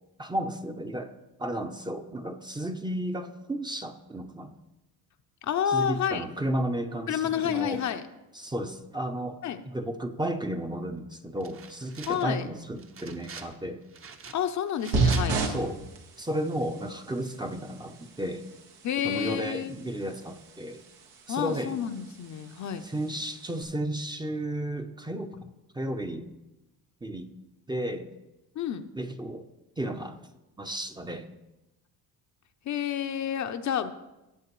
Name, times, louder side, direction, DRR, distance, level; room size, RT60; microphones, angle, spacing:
voice 1, 0.2-1.1 1.4-4.5 5.7-7.8 8.3-9.4 9.7-13.8 15.4-15.8 16.2-18.5 19.0-20.8 21.3-21.8 22.8-25.4 25.7-26.3 27.0-27.3 27.7-28.1 28.9-29.5 29.8-30.3 30.6-31.3, right 1 dB, 10° right, 6 dB, 0.6 m, -33 dB
voice 2, 5.4-6.2 7.1-8.0 9.4-9.6 12.1-12.5 14.3-15.4 18.8-19.7 21.3-22.8 28.6-28.8 32.7-33.9, left 9 dB, 50° left, 8 dB, 0.6 m, -29 dB
sound 1, 11.4-12.4 12.8-13.6 13.9-15.5, right 5 dB, 35° right, 0.9 m, -44 dB
sound 2, 14.9-23.6, right 3 dB, 85° right, 1.5 m, -34 dB
16.0 x 7.2 x 3.1 m, 0.98 s
cardioid pair, 95°, 38 cm